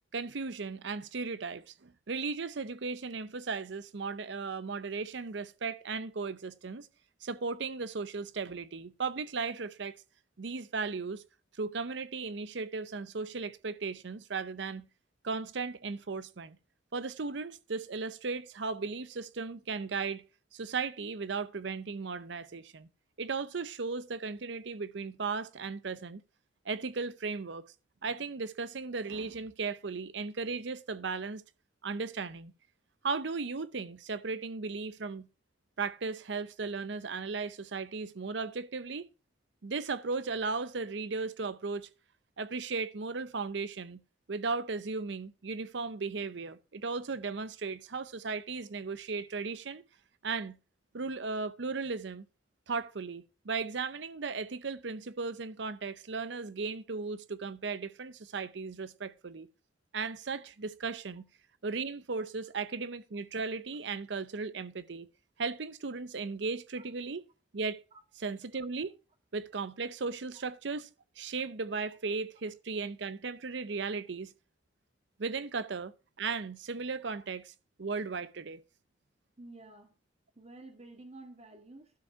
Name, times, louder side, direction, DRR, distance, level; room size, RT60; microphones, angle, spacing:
voice 1, 0.1-6.9 7.2-10.0 10.4-11.2 11.6-14.9 15.2-16.6 16.9-20.2 20.5-22.9 23.2-26.2 26.7-27.6 28.0-31.4 31.8-32.5 33.0-35.3 35.8-39.0 39.6-41.9 42.4-44.0 44.3-49.8 50.2-50.6 50.9-52.2 52.7-59.5 59.9-61.3 61.6-65.1 65.4-67.2 67.5-67.8 68.1-69.0 69.3-70.9 71.2-74.3 75.2-78.6, right 4 dB, 65° right, 0.7 m, -36 dB
voice 2, 79.4-80.0 80.4-81.9, right 2 dB, 35° right, 1.8 m, -50 dB
12.0 x 5.3 x 4.6 m
head